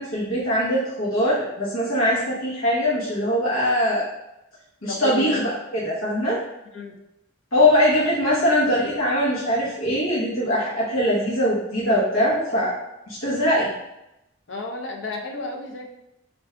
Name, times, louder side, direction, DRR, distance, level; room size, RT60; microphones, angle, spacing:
voice 1, 0.0-4.0 4.8-6.4 7.5-12.7 13.1-13.7, equal, 85° left, -8 dB, 1.0 m, -22 dB
voice 2, 4.9-5.4 6.7-7.0 14.5-15.9, left 3 dB, 65° left, 2 dB, 0.6 m, -32 dB
3.3 x 2.6 x 3.6 m, 0.89 s
head